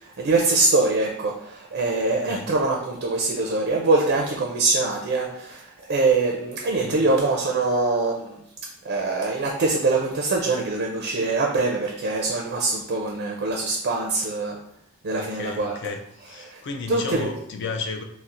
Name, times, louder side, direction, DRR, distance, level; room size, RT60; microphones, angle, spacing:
voice 1, 0.0-8.4 8.8-14.6 15.0-15.7 16.4-16.6 16.9-17.3, right 3 dB, 50° right, 0 dB, 0.4 m, -23 dB
voice 2, 2.1-2.5 6.8-7.0 15.1-18.0, left 4 dB, 55° left, 5 dB, 0.3 m, -34 dB
4.1 x 2.0 x 2.5 m, 0.72 s
head